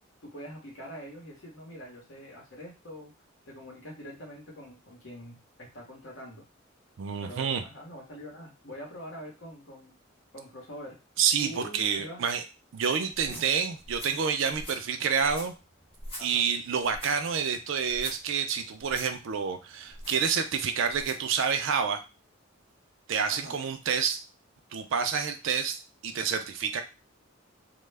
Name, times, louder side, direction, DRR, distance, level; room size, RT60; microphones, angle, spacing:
voice 1, 0.2-3.1 3.5-6.4 7.2-9.9 10.3-11.0 11.4-12.2 13.3-13.4 16.2-16.4 23.3-23.5, equal, 65° left, -1 dB, 0.9 m, -44 dB
voice 2, 7.0-7.6 11.2-12.4 12.7-15.5 16.2-22.0 23.1-24.2 24.7-25.8 26.0-26.8, right 6 dB, 65° right, 7 dB, 0.4 m, -28 dB
sound 1, 13.1-21.3, equal, 25° left, 1.0 m, -46 dB
2.2 x 2.1 x 3.2 m, 0.29 s
head